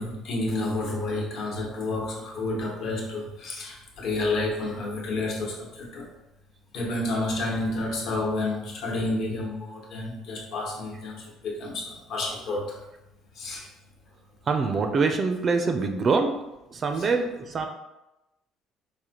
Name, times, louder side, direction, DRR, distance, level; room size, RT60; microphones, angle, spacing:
voice 1, 0.0-6.0 6.7-12.8 13.4-13.6, left 2 dB, 65° left, -2 dB, 1.0 m, -30 dB
voice 2, 14.5-16.4 16.7-17.7, right 4 dB, 35° right, 5 dB, 0.4 m, -24 dB
4.8 x 2.2 x 2.9 m, 0.95 s
cardioid pair, 135°, 0 cm